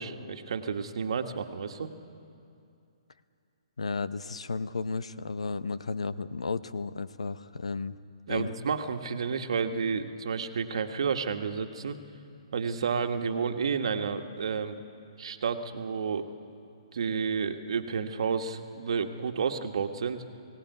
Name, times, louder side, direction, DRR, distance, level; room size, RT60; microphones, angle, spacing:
voice 1, 0.0-1.9 8.3-12.0 12.5-14.8 15.2-16.3 16.9-20.2, right 6 dB, 65° right, 6 dB, 1.5 m, -31 dB
voice 2, 3.8-8.0 8.3-8.5, left 4 dB, 85° left, 14 dB, 0.9 m, -33 dB
22.5 x 17.5 x 9.4 m, 2.5 s
hypercardioid pair, 140°, 3 cm